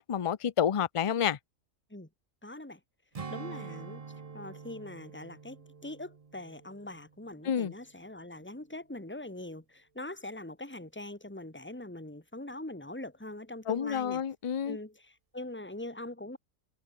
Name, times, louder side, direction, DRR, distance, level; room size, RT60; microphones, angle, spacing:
voice 1, 0.0-1.4 7.4-7.7 13.7-14.8, left 8 dB, 50° left, 0.4 m, -29 dB
voice 2, 2.4-2.8 3.3-14.2 14.6-16.4, left 1 dB, 10° left, 3.1 m, -43 dB
Strum, 3.1-7.9 8.2-8.5, right 5 dB, 30° right, 0.8 m, -46 dB
omnidirectional pair, 1.4 m